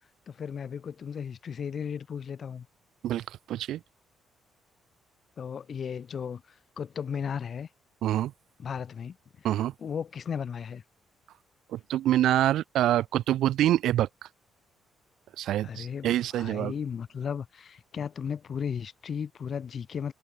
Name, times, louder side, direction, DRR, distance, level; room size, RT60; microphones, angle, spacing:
voice 1, 0.3-2.7 5.4-6.4 6.8-7.7 8.6-9.5 9.8-10.8 15.6-20.1, left 7 dB, 50° left, 0.8 m, -35 dB
voice 2, 3.0-3.8 8.0-8.3 9.4-9.7 11.7-14.1 15.4-16.7, right 13 dB, 80° right, 0.5 m, -26 dB
cardioid pair, 90°, 0 cm